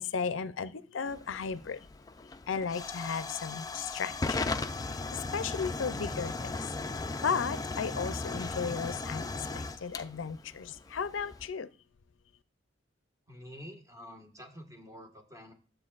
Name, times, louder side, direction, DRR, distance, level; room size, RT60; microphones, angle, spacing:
voice 1, 0.0-1.8 2.5-4.5 4.8-6.7 7.2-11.7, left 6 dB, 85° left, 15 dB, 0.5 m, -35 dB
Hiss / Fire / Tick, 1.1-11.5, left 3 dB, 20° left, 0.4 m, -37 dB
voice 2, 13.3-15.5, equal, 15° right, 3 dB, 1.5 m, -48 dB
12.0 x 7.8 x 2.4 m, 0.38 s
head